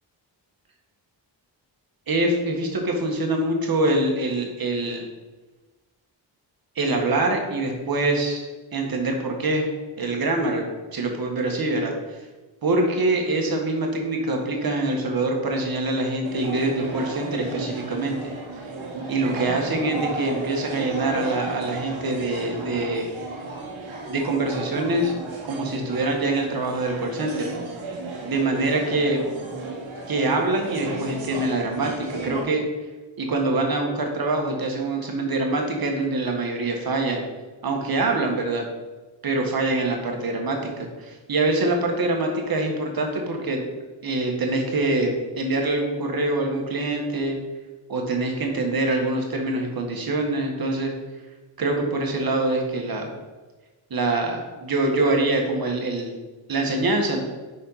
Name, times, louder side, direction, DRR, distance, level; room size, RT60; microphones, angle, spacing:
voice 1, 2.1-5.1 6.7-9.7 10.0-10.7 10.9-12.2 12.6-18.3 19.1-23.1 24.1-25.1 25.4-27.5 28.2-29.2 30.1-32.6 33.2-37.2 37.6-38.7 39.2-43.6 44.0-47.4 47.9-50.9 51.6-53.1 53.9-56.1 56.5-57.2, right 2 dB, 50° right, 2 dB, 1.6 m, -24 dB
sound 1, 16.2-32.4, right 2 dB, 90° right, 1.3 m, -34 dB
5.4 x 4.3 x 5.6 m, 1.2 s
cardioid pair, 70°, 46 cm